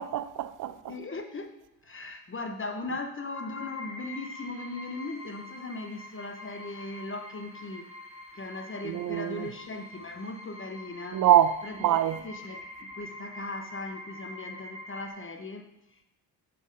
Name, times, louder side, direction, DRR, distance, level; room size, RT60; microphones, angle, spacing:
voice 1, 0.0-0.9 8.8-9.5 11.1-12.2, right 11 dB, 45° right, 0.4 m, -25 dB
voice 2, 0.9-1.6 1.8-7.9 8.3-11.2 11.6-11.8 12.2-16.0, left 2 dB, 25° left, 0.8 m, -38 dB
sound 1, 3.2-15.1, left 1 dB, 15° right, 1.7 m, -45 dB
7.2 x 3.8 x 3.8 m
hypercardioid pair, 45°, 49 cm